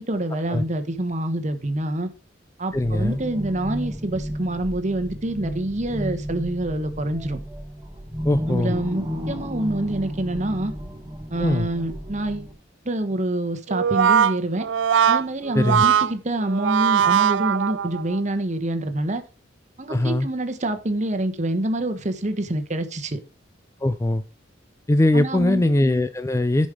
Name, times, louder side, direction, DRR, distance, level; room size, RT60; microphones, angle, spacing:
voice 1, 0.0-2.1 2.6-7.4 8.5-10.7 11.3-12.5 12.8-14.7 15.1-19.2 19.8-23.2 25.1-25.6, right 1 dB, 40° right, 9 dB, 1.2 m, -26 dB
voice 2, 2.7-3.2 8.2-8.8 11.4-11.7 15.5-15.9 19.9-20.3 23.8-24.2 24.9-26.7, left 1 dB, 15° left, 11 dB, 0.4 m, -21 dB
sound 1, 2.7-12.5, equal, 15° right, 1.5 m, -33 dB
Brass instrument, 13.7-18.2, right 8 dB, 75° right, 0.4 m, -20 dB
10.5 x 5.3 x 4.9 m, 0.32 s
head